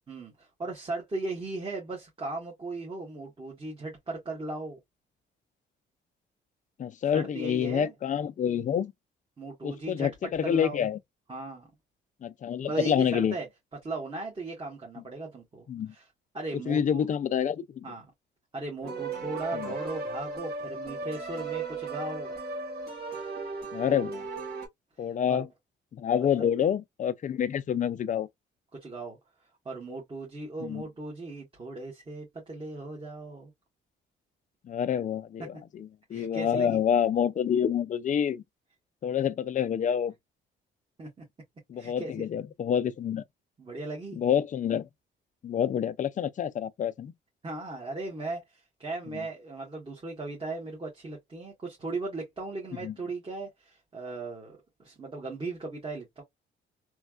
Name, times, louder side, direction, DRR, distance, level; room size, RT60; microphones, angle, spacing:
voice 1, 0.1-4.8 7.1-7.9 9.4-10.1 10.4-10.8 11.3-11.7 12.6-13.5 13.8-16.1 16.3-17.0 17.8-18.1 18.5-22.4 25.3-25.4 26.4-26.5 28.8-29.2 29.6-33.5 36.1-36.8 41.0-41.1 41.8-42.1 43.6-44.2 47.4-56.2, right 2 dB, 25° right, 1.3 m, -37 dB
voice 2, 6.8-8.9 9.6-11.0 12.2-13.3 15.7-15.9 16.7-17.8 19.5-19.7 23.7-24.2 25.0-25.5 25.9-28.3 30.6-30.8 34.6-38.4 39.0-40.1 41.7-43.2 44.2-44.9 45.4-47.1 52.8-52.9, left 8 dB, 40° left, 0.4 m, -28 dB
sound 1, 18.8-24.7, right 3 dB, 55° right, 1.7 m, -36 dB
3.1 x 2.3 x 2.4 m
cardioid pair, 90°, 20 cm